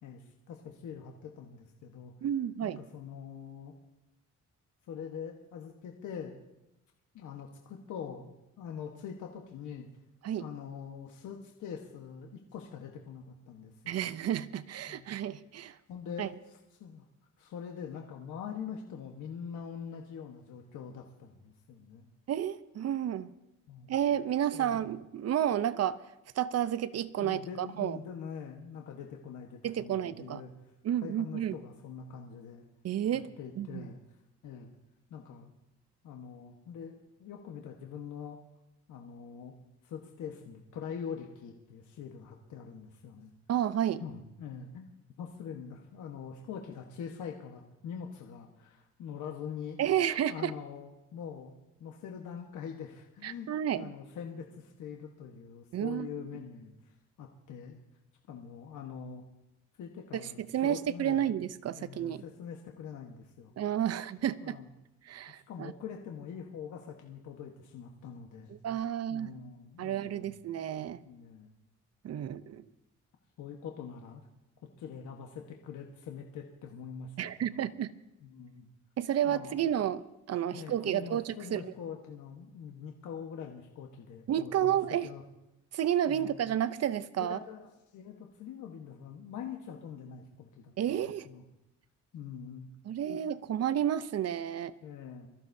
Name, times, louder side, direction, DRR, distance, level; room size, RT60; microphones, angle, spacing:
voice 1, 0.0-2.1 2.6-3.7 4.9-6.4 7.1-9.9 10.4-14.0 14.9-15.2 15.9-17.1 17.4-22.1 23.7-23.9 24.5-24.8 27.2-30.5 31.0-32.6 33.1-34.0 34.4-34.7 35.1-35.5 36.0-38.4 38.9-39.5 39.8-43.3 44.0-44.9 45.2-49.8 50.3-53.5 53.7-57.8 58.3-59.2 59.8-61.3 61.8-63.6 64.4-64.7 65.5-68.6 69.1-70.4 71.0-71.5 72.1-72.5 73.4-74.2 74.8-77.1 77.5-77.6 78.2-78.7 79.2-79.7 80.5-85.2 86.0-86.4 87.2-91.4 92.1-92.7 93.1-93.2 94.8-95.3, left 7 dB, 75° left, 2 dB, 1.3 m, -44 dB
voice 2, 2.2-2.8 10.2-10.5 13.9-15.8 16.2-16.3 22.3-23.3 23.9-26.0 26.4-28.0 29.6-30.4 30.8-31.6 32.8-33.3 33.6-33.8 43.5-44.0 49.8-50.5 53.2-53.9 55.7-56.1 60.1-62.2 63.6-64.6 65.1-65.7 68.6-69.3 69.8-71.0 72.0-72.6 77.2-77.9 79.0-81.6 84.3-85.1 85.7-87.4 90.8-91.3 92.9-94.7, right 10 dB, 55° right, 15 dB, 0.7 m, -31 dB
23.5 x 14.0 x 2.7 m, 0.91 s
cardioid pair, 90°, 30 cm